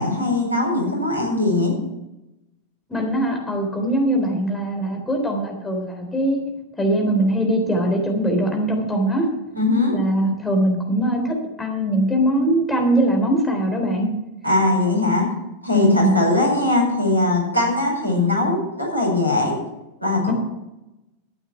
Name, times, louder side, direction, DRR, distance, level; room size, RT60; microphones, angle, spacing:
voice 1, 0.0-1.8 9.5-9.9 14.4-15.3 15.6-19.6 20.0-20.3, left 2 dB, 85° right, -1 dB, 4.9 m, -20 dB
voice 2, 2.9-6.4 6.8-9.3 9.9-14.1 15.7-16.1, right 1 dB, 10° left, 2 dB, 3.7 m, -21 dB
13.0 x 8.7 x 5.9 m, 0.93 s
figure-of-eight pair, 90°, 0 cm